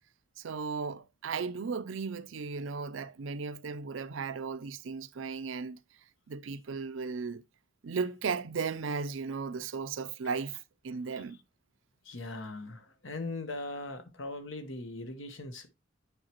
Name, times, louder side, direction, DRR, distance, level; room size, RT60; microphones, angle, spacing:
voice 1, 0.4-5.8 6.3-7.4 7.8-10.6 10.8-11.4, right 5 dB, 90° right, 0.5 m, -35 dB
voice 2, 12.0-15.7, left 2 dB, 90° left, 1.1 m, -40 dB
9.0 x 4.8 x 2.9 m
head